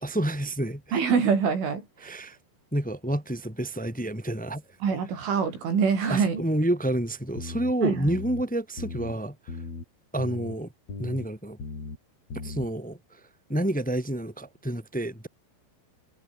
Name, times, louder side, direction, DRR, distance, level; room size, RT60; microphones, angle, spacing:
voice 1, 0.0-0.8 2.0-2.4 2.7-4.6 6.1-9.6 10.1-10.7 11.0-11.6 12.4-13.2 13.5-15.3, right 1 dB, ahead, 2.9 m, -29 dB
voice 2, 0.9-1.9 4.8-6.4 7.8-8.1, right 6 dB, 90° right, 8.5 m, -24 dB
sound 1, 7.4-7.7 8.1-8.4 8.8-9.1 9.5-9.8 10.2-10.6 10.9-11.3 11.6-12.0 12.3-12.7, left 4 dB, 35° left, 6.8 m, -37 dB
omnidirectional pair, 5.4 m